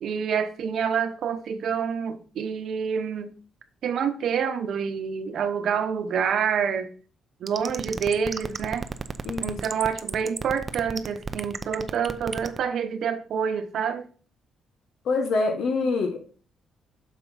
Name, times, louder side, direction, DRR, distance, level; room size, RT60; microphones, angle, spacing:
voice 1, 0.0-3.3 3.8-6.9 7.4-8.9 9.4-14.1, right 7 dB, 65° right, 8 dB, 0.9 m, -27 dB
sound 1, 7.5-12.6, right 4 dB, 30° right, 0.6 m, -31 dB
voice 2, 9.2-9.6 15.0-16.2, left 3 dB, 70° left, 5 dB, 1.2 m, -25 dB
6.6 x 4.5 x 4.0 m, 0.39 s
cardioid pair, 90°, 0 cm